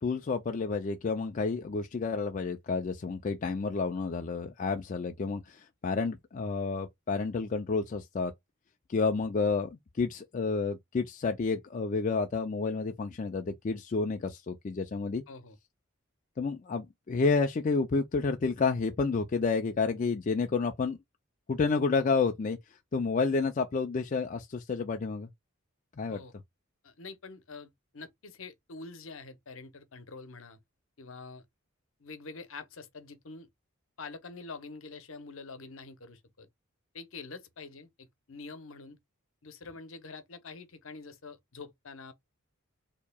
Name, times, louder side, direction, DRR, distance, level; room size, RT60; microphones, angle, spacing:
voice 1, 0.0-8.3 8.9-15.2 16.4-21.0 21.5-22.6 22.9-25.3 26.0-26.2, left 4 dB, 35° left, 0.3 m, -30 dB
voice 2, 15.3-15.6 26.1-26.3 26.8-30.6 31.0-31.4 32.0-33.5 34.0-36.5 36.9-39.0 39.4-42.1, left 4 dB, 65° left, 0.8 m, -46 dB
4.5 x 2.9 x 2.2 m
head